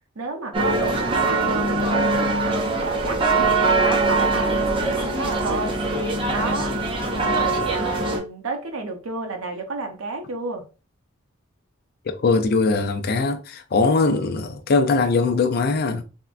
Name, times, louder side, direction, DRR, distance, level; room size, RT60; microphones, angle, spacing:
voice 1, 0.2-5.8 6.3-6.8 7.1-10.7, right 3 dB, 75° right, 0.7 m, -31 dB
sound 1, 0.5-8.2, right 3 dB, 25° right, 0.5 m, -22 dB
voice 2, 12.1-16.0, left 3 dB, 50° left, 0.4 m, -21 dB
3.5 x 2.1 x 2.5 m
head